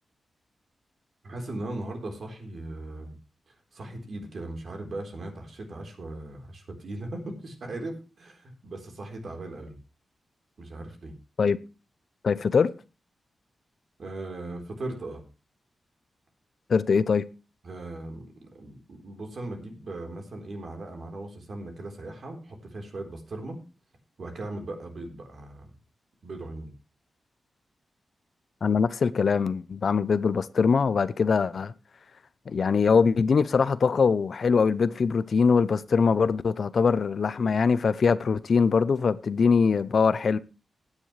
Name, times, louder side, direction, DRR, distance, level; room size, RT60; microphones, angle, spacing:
voice 1, 1.2-3.1 3.7-9.8 10.6-11.2 14.0-15.2 17.6-18.3 18.6-23.6 24.2-25.7 26.2-26.7, right 2 dB, 55° right, 3.9 m, -38 dB
voice 2, 12.2-12.7 16.7-17.3 28.6-31.7 32.5-40.4, left 5 dB, 55° left, 0.6 m, -22 dB
16.5 x 9.7 x 3.3 m
wide cardioid pair, 135°, 0 cm